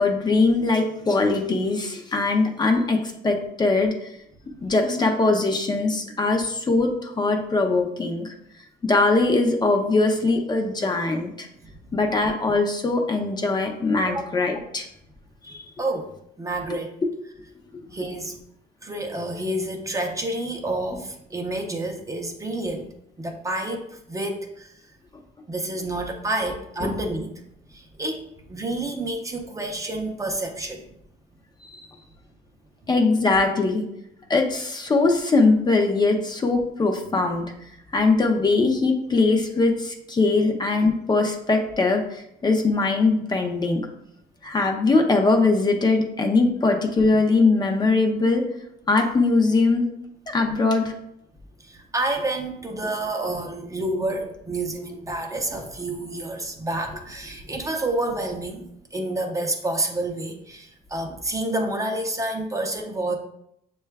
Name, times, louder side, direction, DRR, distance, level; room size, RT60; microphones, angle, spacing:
voice 1, 0.0-4.1 4.6-8.3 8.8-11.5 11.9-14.9 15.4-15.6 17.7-17.9 26.8-26.9 31.7-31.8 32.9-33.9 34.3-37.5 37.9-43.8 44.4-48.4 48.9-49.9 50.3-50.9, left 3 dB, 25° left, 3 dB, 0.5 m, -21 dB
voice 2, 15.8-16.1 16.4-17.0 17.9-18.4 18.8-24.7 25.5-27.4 27.7-30.8 40.4-40.5 51.6-63.1, right 2 dB, 20° right, 3 dB, 0.5 m, -29 dB
6.3 x 2.3 x 3.3 m, 0.76 s
cardioid pair, 110°, 17 cm